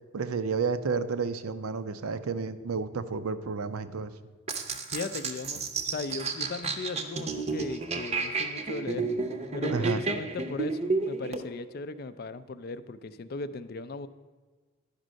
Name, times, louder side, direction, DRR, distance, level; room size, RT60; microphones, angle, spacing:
voice 1, 0.1-4.1 9.7-10.0, right 5 dB, 90° right, 12 dB, 0.5 m, -31 dB
sound 1, 4.5-11.4, right 4 dB, 30° right, 0.6 m, -31 dB
voice 2, 4.9-9.1 9.5-14.1, left 3 dB, 45° left, 13 dB, 0.4 m, -37 dB
10.5 x 5.2 x 6.3 m, 1.4 s
head